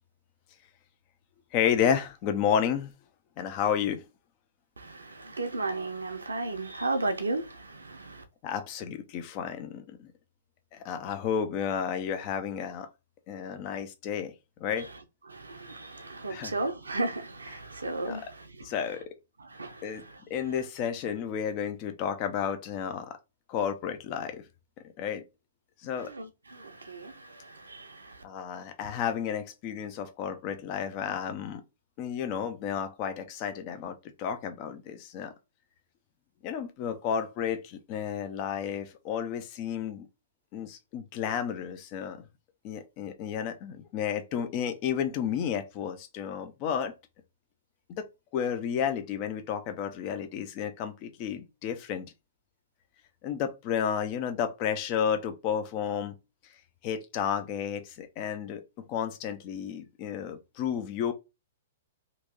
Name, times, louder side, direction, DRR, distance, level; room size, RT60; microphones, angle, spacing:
voice 1, 1.5-2.9 3.4-4.0 8.4-10.1 10.7-12.9 13.3-14.3 14.6-14.9 16.3-16.5 18.1-18.2 18.6-19.0 19.8-20.0 20.3-23.2 23.5-24.4 25.0-25.2 25.8-26.1 28.2-31.6 32.0-35.3 36.4-40.1 40.5-42.2 42.6-46.9 48.0-48.1 48.3-52.1 53.2-56.1 56.8-58.6 58.9-61.1, left 8 dB, 40° left, 0.7 m, -31 dB
voice 2, 4.8-8.2 14.8-19.0 19.4-20.6 26.0-28.2, right 2 dB, 85° right, 0.7 m, -35 dB
3.0 x 2.7 x 3.7 m
figure-of-eight pair, 115°, 0 cm